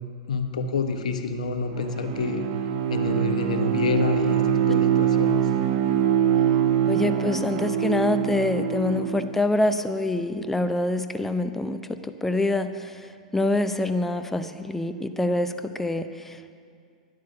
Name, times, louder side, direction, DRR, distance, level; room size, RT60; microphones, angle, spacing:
voice 1, 0.3-2.4 2.9-5.4, left 4 dB, 70° left, 7 dB, 1.1 m, -27 dB
Bowed string instrument, 1.7-9.4, right 9 dB, 50° right, 1.1 m, -24 dB
voice 2, 6.9-16.5, left 2 dB, 5° left, 9 dB, 0.7 m, -26 dB
11.5 x 10.5 x 6.8 m, 2.3 s
figure-of-eight pair, 100°, 4 cm